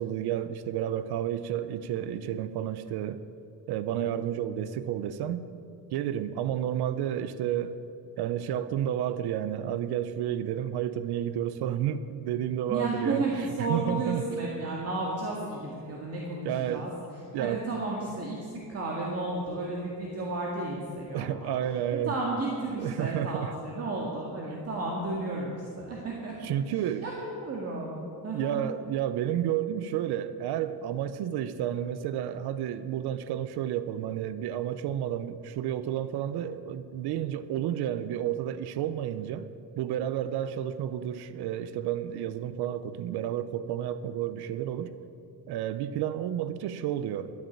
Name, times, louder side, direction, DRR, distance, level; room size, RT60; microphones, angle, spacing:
voice 1, 0.0-3.2 3.7-5.4 5.9-7.8 8.2-14.2 15.0-15.1 16.4-16.8 17.3-17.6 21.1-22.1 22.8-23.5 26.4-27.1 28.3-39.5 39.8-44.9 45.5-47.3, right 10 dB, 85° right, 13 dB, 0.7 m, -31 dB
voice 2, 12.7-16.9 17.4-18.4 18.7-21.5 21.9-26.3 27.0-28.6, right 2 dB, 40° right, -2 dB, 2.0 m, -33 dB
12.5 x 9.6 x 8.6 m, 2.7 s
cardioid pair, 160°, 38 cm